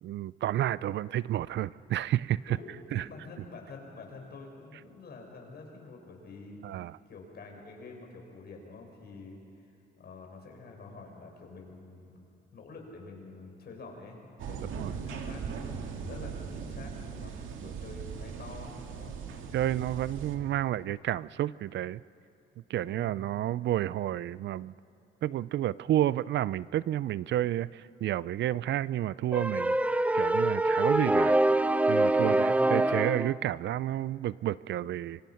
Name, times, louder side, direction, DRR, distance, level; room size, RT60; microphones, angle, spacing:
voice 1, 0.0-2.6 2.9-3.1 6.6-6.9 14.8-15.0 17.6-17.7 19.5-22.0 22.7-24.7 25.2-29.8 30.1-31.4 31.9-35.2, right 13 dB, 65° right, 20 dB, 0.4 m, -30 dB
voice 2, 2.5-6.6 7.1-9.7 10.0-12.3 12.5-19.1 22.7-23.1 32.1-32.5, left 3 dB, 55° left, 1 dB, 5.7 m, -47 dB
sound 1, 14.4-20.4, right 6 dB, 85° right, 2.1 m, -39 dB
sound 2, 29.3-33.3, right 2 dB, 5° right, 0.5 m, -25 dB
26.0 x 24.0 x 5.8 m, 2.8 s
cardioid pair, 90°, 20 cm